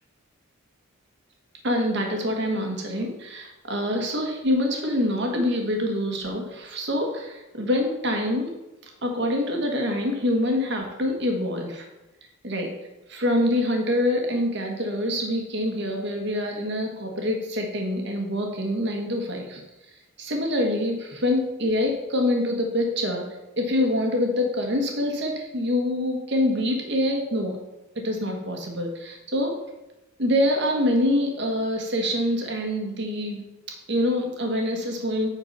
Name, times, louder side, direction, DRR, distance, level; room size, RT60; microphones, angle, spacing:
voice 1, 1.6-3.1 3.4-8.5 8.8-11.8 12.4-12.7 13.1-19.6 20.2-23.2 23.6-27.6 27.9-29.5 30.2-33.4 33.9-35.3, left 1 dB, 55° right, 2 dB, 1.6 m, -25 dB
9.4 x 4.5 x 5.6 m, 0.99 s
head